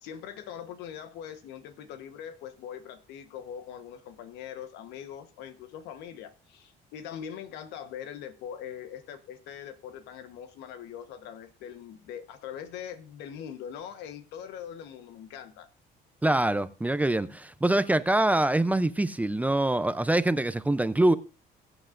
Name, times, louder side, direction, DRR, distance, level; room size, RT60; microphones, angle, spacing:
voice 1, 0.0-15.7, left 9 dB, 90° left, 1.2 m, -42 dB
voice 2, 16.2-21.1, right 1 dB, 10° right, 0.5 m, -24 dB
22.0 x 8.0 x 2.5 m
cardioid pair, 110°, 17 cm